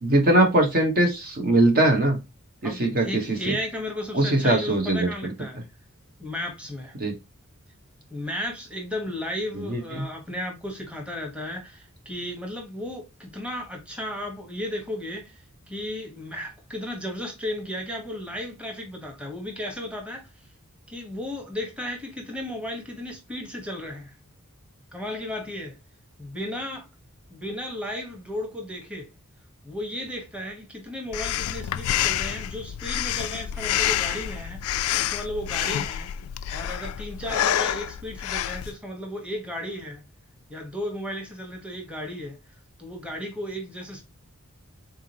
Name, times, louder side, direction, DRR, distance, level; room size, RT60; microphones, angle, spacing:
voice 1, 0.0-2.2 2.6-3.2 3.5-3.6 4.1-5.1 7.0-7.1 9.7-10.0, right 1 dB, 45° right, 1.1 m, -21 dB
voice 2, 2.6-5.6 6.2-6.9 8.1-15.4 15.7-20.3 20.9-24.1 24.9-25.8 26.2-26.9 27.3-29.1 29.6-36.1 36.5-40.0 40.5-42.4 42.8-44.0, left 1 dB, 5° right, 1.2 m, -34 dB
Breathing, 31.1-38.7, left 11 dB, 70° left, 0.3 m, -28 dB
3.9 x 3.6 x 2.8 m
head